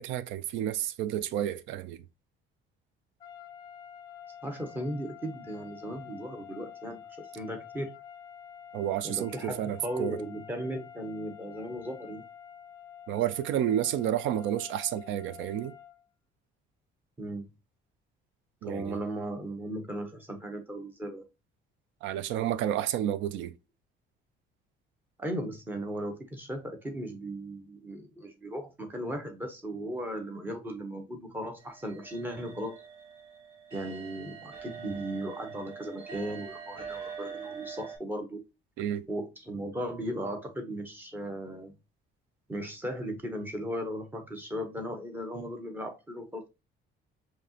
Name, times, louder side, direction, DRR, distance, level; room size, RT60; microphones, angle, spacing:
voice 1, 0.0-2.0 8.7-10.2 13.1-15.7 18.6-19.0 22.0-23.5 38.8-39.1, right 11 dB, 85° right, 0.5 m, -30 dB
sound 1, 3.2-16.0, left 8 dB, 20° left, 0.7 m, -48 dB
voice 2, 4.4-7.0 7.3-7.9 9.0-12.2 17.2-17.5 18.6-21.2 25.2-32.8 33.7-38.4 39.1-41.7 42.5-46.5, right 1 dB, 10° right, 0.8 m, -37 dB
sound 2, 31.6-38.0, right 6 dB, 30° right, 2.4 m, -44 dB
5.0 x 2.9 x 2.8 m
cardioid pair, 165°, 19 cm